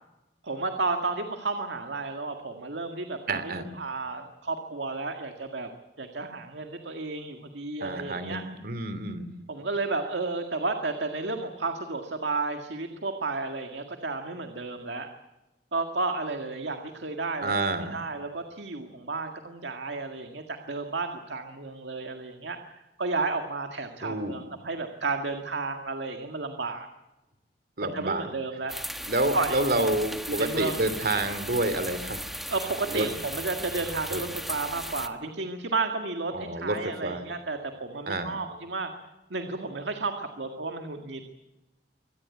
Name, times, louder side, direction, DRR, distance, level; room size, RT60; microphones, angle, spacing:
voice 1, 0.4-5.7 6.0-8.4 9.5-15.1 15.7-17.5 17.9-26.9 27.9-28.7 29.3-29.6 30.3-30.9 32.5-38.9 39.3-41.2, right 3 dB, 80° right, 5 dB, 1.9 m, -32 dB
voice 2, 3.3-3.7 7.8-9.3 17.4-18.1 24.0-24.4 27.8-28.3 29.1-32.2 32.9-33.0 34.1-34.2 36.3-37.2 38.1-38.4, right 2 dB, 60° right, 11 dB, 2.8 m, -29 dB
sound 1, 28.7-35.1, equal, ahead, 1.5 m, -37 dB
25.0 x 18.0 x 8.5 m, 1.0 s
head